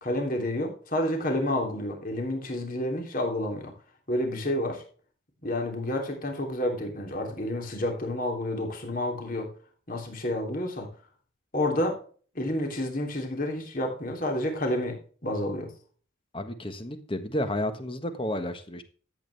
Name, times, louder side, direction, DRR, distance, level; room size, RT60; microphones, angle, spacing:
voice 1, 0.0-3.7 4.1-4.8 5.4-9.5 9.9-10.9 11.5-12.0 12.3-15.7, left 1 dB, 45° left, 2 dB, 3.2 m, -29 dB
voice 2, 16.3-18.8, left 1 dB, 25° left, 9 dB, 1.4 m, -31 dB
13.0 x 8.5 x 3.4 m, 0.41 s
head